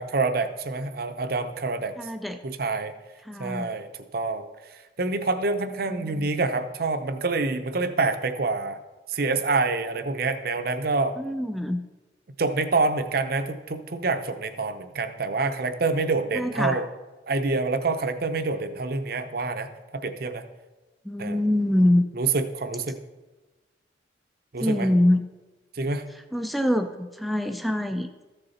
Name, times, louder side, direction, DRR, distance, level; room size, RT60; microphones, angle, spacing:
voice 1, 0.0-1.9 2.4-2.9 3.4-4.5 5.0-8.8 9.1-11.2 12.4-16.9 17.3-19.7 19.9-20.4 21.2-21.4 22.2-23.0 24.5-24.9 25.7-26.1, right 3 dB, 50° right, 9 dB, 0.7 m, -26 dB
voice 2, 2.0-2.4 3.2-3.7 5.8-6.3 11.2-11.8 16.3-16.8 21.0-22.0 24.6-25.3 26.3-28.1, left 1 dB, ahead, 8 dB, 0.4 m, -24 dB
14.0 x 6.7 x 4.2 m, 1.2 s
head